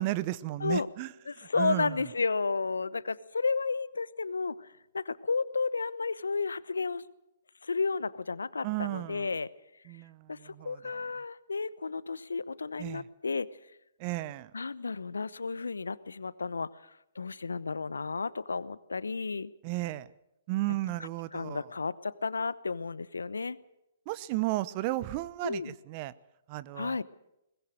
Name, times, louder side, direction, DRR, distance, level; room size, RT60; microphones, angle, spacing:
voice 1, 0.0-1.1 1.6-2.0 8.6-9.3 9.9-10.8 12.8-13.0 14.0-14.5 19.6-20.1 20.5-21.7 24.1-26.1 26.5-27.0, right 17 dB, 40° right, 17 dB, 0.9 m, -33 dB
voice 2, 1.3-7.0 7.6-9.5 10.3-13.5 14.5-16.7 17.1-19.5 21.3-23.6 25.4-25.7 26.7-27.0, left 4 dB, 80° left, 18 dB, 0.9 m, -32 dB
22.0 x 20.5 x 6.6 m, 0.87 s
figure-of-eight pair, 120°, 0 cm